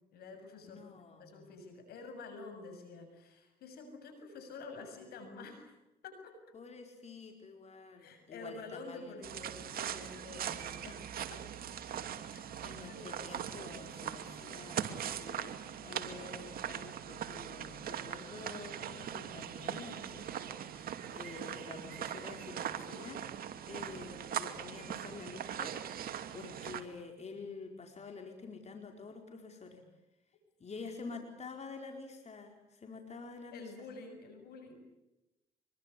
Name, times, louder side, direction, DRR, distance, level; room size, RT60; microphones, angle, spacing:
voice 1, 0.1-0.9 1.2-5.7 6.0-6.4 8.0-11.4 12.3-12.5 12.9-13.2 33.5-34.8, left 3 dB, 80° left, 7 dB, 7.2 m, -49 dB
voice 2, 0.6-1.5 6.5-9.3 12.6-20.4 20.7-23.2 23.7-29.8 30.6-33.9, left 4 dB, 45° left, 3 dB, 4.6 m, -48 dB
sound 1, 9.2-26.8, right 9 dB, 70° right, 2.5 m, -41 dB
25.0 x 23.0 x 8.5 m, 0.96 s
supercardioid pair, 65°, 16 cm